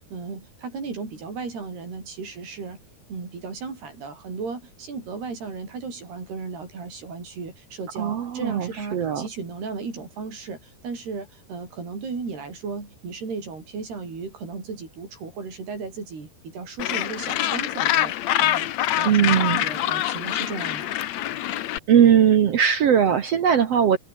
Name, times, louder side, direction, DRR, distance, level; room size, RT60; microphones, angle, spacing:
voice 1, 0.1-2.8 3.1-18.7 19.0-20.9, right 4 dB, 80° right, 9.1 m, -35 dB
voice 2, 8.0-9.2 19.0-19.6 21.9-24.0, right 8 dB, 60° right, 1.7 m, -19 dB
Gull seagull, 16.8-21.8, left 13 dB, 75° left, 1.6 m, -25 dB
omnidirectional pair, 4.5 m